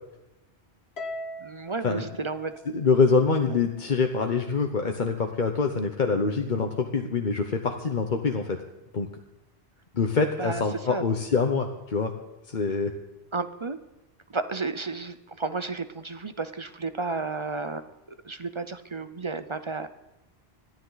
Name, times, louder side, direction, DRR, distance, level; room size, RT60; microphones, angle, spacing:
Harp, 1.0-3.4, left 1 dB, 65° left, 1.6 m, -40 dB
voice 1, 1.4-2.5 10.4-11.0 13.3-13.8 14.3-17.9 18.2-19.9, right 3 dB, 30° right, 11 dB, 0.6 m, -32 dB
voice 2, 2.7-8.6 8.9-9.1 9.9-12.1 12.5-12.9, left 4 dB, 45° left, 4 dB, 1.0 m, -25 dB
21.5 x 14.0 x 4.0 m, 0.99 s
omnidirectional pair, 1.1 m